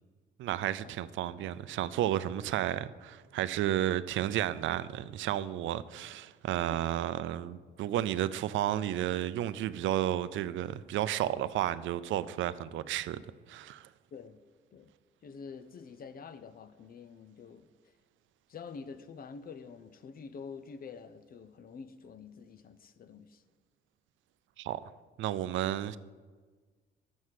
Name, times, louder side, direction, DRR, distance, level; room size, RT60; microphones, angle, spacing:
voice 1, 0.4-13.2 13.5-13.9 24.6-24.9 25.2-26.0, right 12 dB, 75° right, 0.4 m, -32 dB
voice 2, 14.1-14.4 14.7-14.9 15.2-17.7 18.5-23.4, left 5 dB, 50° left, 0.6 m, -47 dB
6.4 x 6.2 x 7.4 m
cardioid pair, 90°, 20 cm